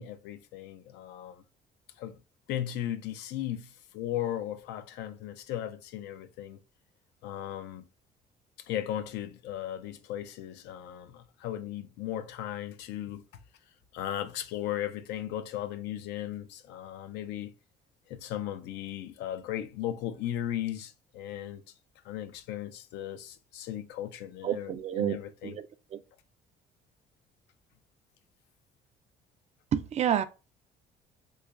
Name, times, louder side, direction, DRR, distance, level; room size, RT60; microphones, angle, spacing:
voice 1, 0.0-1.4 2.0-2.2 2.5-6.6 7.2-7.9 8.7-13.2 13.9-17.5 18.1-21.6 22.0-25.5, left 11 dB, 85° left, 0.5 m, -36 dB
voice 2, 24.4-25.2 25.4-26.0 29.7-30.2, right 10 dB, 40° right, 0.4 m, -29 dB
3.0 x 2.4 x 3.5 m
cardioid pair, 110°, 17 cm